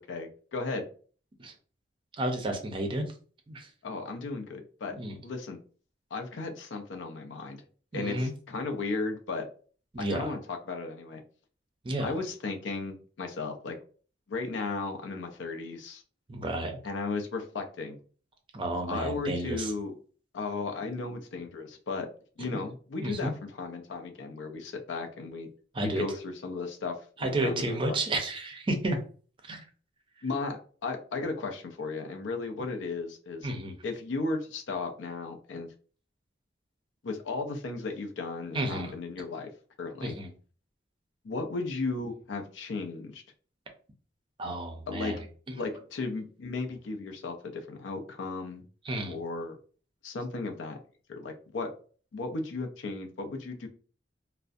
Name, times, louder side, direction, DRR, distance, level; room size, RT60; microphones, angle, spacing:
voice 1, 0.1-0.9 3.8-5.0 5.2-5.6 6.1-7.6 7.9-9.5 10.0-11.2 12.0-13.8 14.3-16.0 16.8-18.0 18.9-19.9 20.3-22.1 22.4-25.5 25.8-28.0 30.2-33.5 33.8-35.7 37.0-39.5 39.8-40.2 41.2-43.2 44.9-45.1 45.5-48.6 49.1-49.6 50.0-50.8 51.1-51.7 52.1-53.7, left 3 dB, 80° left, 4 dB, 0.5 m, -35 dB
voice 2, 2.2-3.1 3.5-3.7 4.9-5.2 7.9-8.3 9.9-10.4 11.8-12.1 16.3-16.8 18.5-19.7 22.5-22.6 23.0-23.3 25.7-26.0 27.2-29.0 29.4-29.6 33.4-33.7 38.5-38.9 40.0-40.3 44.4-45.2 48.8-49.2, right 1 dB, 30° right, 4 dB, 0.5 m, -31 dB
2.4 x 2.1 x 2.5 m, 0.41 s
head